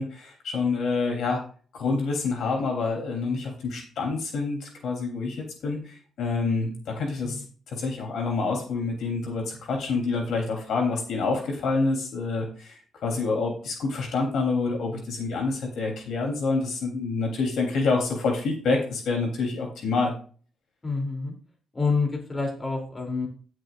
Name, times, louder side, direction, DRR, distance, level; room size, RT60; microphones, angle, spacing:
voice 1, 0.0-1.4 1.7-20.1, left 3 dB, 70° left, 1 dB, 3.3 m, -27 dB
voice 2, 20.8-21.3 21.7-23.3, left 4 dB, 25° left, 1 dB, 3.0 m, -28 dB
17.5 x 6.4 x 2.5 m, 0.42 s
cardioid pair, 90°, 0 cm